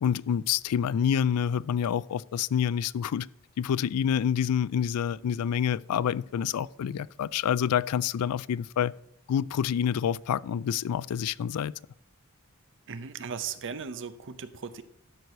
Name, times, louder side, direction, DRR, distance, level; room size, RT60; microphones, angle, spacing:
voice 1, 0.0-3.3 3.6-8.9 9.3-11.7, left 8 dB, 80° left, 0.3 m, -27 dB
voice 2, 12.9-14.8, right 6 dB, 55° right, 0.7 m, -37 dB
12.5 x 4.6 x 6.7 m
head